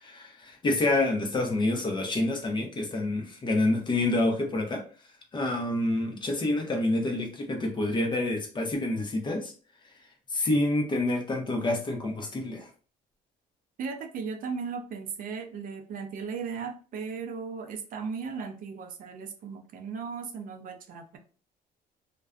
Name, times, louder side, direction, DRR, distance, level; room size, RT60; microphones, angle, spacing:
voice 1, 0.0-4.8 5.3-9.5 10.3-12.7, left 2 dB, 25° left, 3 dB, 0.7 m, -27 dB
voice 2, 13.8-21.2, right 5 dB, 55° right, 5 dB, 0.5 m, -36 dB
2.4 x 2.2 x 2.4 m, 0.38 s
cardioid pair, 110°, 17 cm